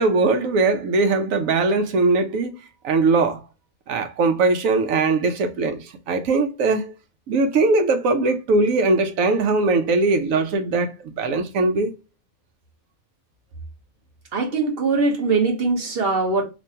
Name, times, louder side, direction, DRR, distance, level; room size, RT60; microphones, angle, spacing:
voice 1, 0.0-2.5 2.8-3.4 3.9-6.9 7.3-11.9, right 3 dB, 80° right, 1.1 m, -20 dB
voice 2, 14.3-16.4, right 3 dB, 50° right, 1.1 m, -21 dB
3.1 x 2.6 x 4.2 m
omnidirectional pair, 1.4 m